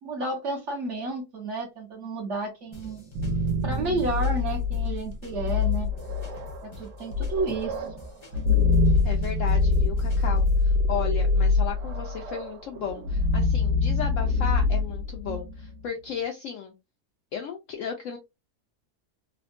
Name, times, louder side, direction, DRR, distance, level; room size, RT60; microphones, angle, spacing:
voice 1, 0.0-3.0 3.6-5.9 6.6-7.8, right 2 dB, 55° right, 2 dB, 1.0 m, -31 dB
sound 1, 2.7-10.7, right 1 dB, 40° left, 0.4 m, -47 dB
sound 2, 2.9-15.7, left 3 dB, 80° right, 1.4 m, -25 dB
voice 2, 9.0-16.7 17.3-18.2, left 7 dB, 70° left, 3 dB, 0.7 m, -34 dB
3.4 x 2.1 x 2.5 m, 0.24 s
omnidirectional pair, 1.8 m